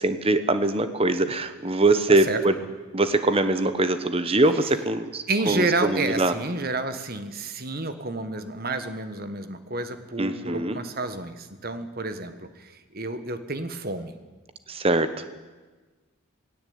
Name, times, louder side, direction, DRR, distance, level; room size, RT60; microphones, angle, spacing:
voice 1, 0.0-2.6 2.9-6.3 10.2-10.8 14.7-15.3, right 2 dB, 25° right, 11 dB, 1.1 m, -23 dB
voice 2, 2.1-2.4 5.3-14.1, right 2 dB, 45° right, 10 dB, 1.4 m, -30 dB
18.0 x 17.0 x 8.8 m, 1.3 s
head